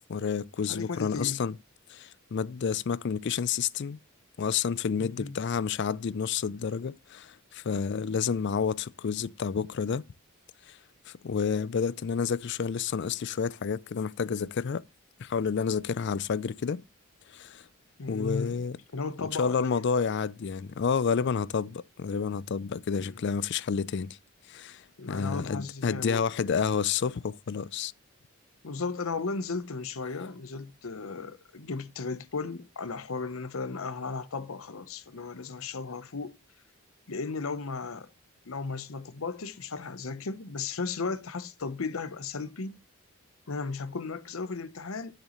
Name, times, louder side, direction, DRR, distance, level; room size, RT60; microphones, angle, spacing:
voice 1, 0.1-1.6 1.9-4.0 4.4-10.0 10.7-10.8 11.1-14.8 15.2-16.8 17.3-17.7 18.1-18.8 19.2-24.2 24.5-27.9, left 6 dB, 55° left, 0.4 m, -30 dB
voice 2, 0.7-1.4 5.0-5.4 18.0-18.6 18.9-19.8 22.9-23.2 25.0-26.2 28.6-36.4 37.1-38.1 38.5-42.8 43.5-45.1, left 4 dB, 70° left, 0.8 m, -35 dB
12.0 x 6.7 x 3.0 m
head